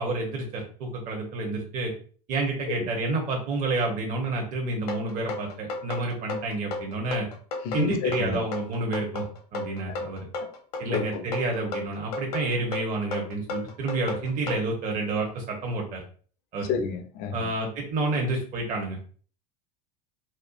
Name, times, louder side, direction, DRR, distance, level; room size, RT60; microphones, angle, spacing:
voice 1, 0.0-1.9 2.3-7.3 7.7-9.2 9.5-10.3 10.8-16.0 16.5-16.7 17.3-19.1, right 2 dB, 40° right, 0 dB, 1.0 m, -29 dB
sound 1, 4.9-14.6, left 3 dB, 65° left, 1.2 m, -33 dB
voice 2, 7.6-8.4 10.4-10.5 10.9-11.2 16.7-17.5, left 5 dB, 45° left, 8 dB, 0.7 m, -30 dB
4.3 x 2.4 x 2.5 m, 0.43 s
figure-of-eight pair, 80°, 21 cm